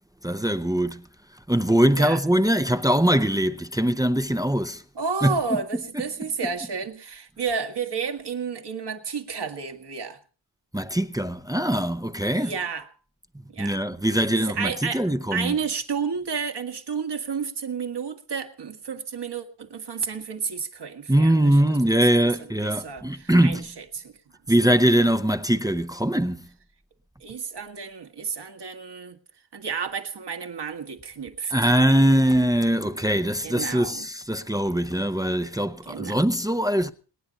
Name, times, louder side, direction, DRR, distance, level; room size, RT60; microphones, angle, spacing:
voice 1, 0.2-1.1 1.5-4.8 5.2-5.6 10.7-12.5 13.6-15.6 21.1-23.7 24.5-26.5 31.5-36.9, right 1 dB, 10° right, 0.7 m, -22 dB
voice 2, 5.0-10.2 12.3-12.9 13.5-13.8 14.3-15.0 15.3-21.3 22.6-24.1 27.2-29.2 29.5-31.7 33.4-34.1 35.9-36.2, right 5 dB, 60° right, 1.9 m, -31 dB
27.0 x 9.9 x 4.1 m
wide cardioid pair, 120°, 45 cm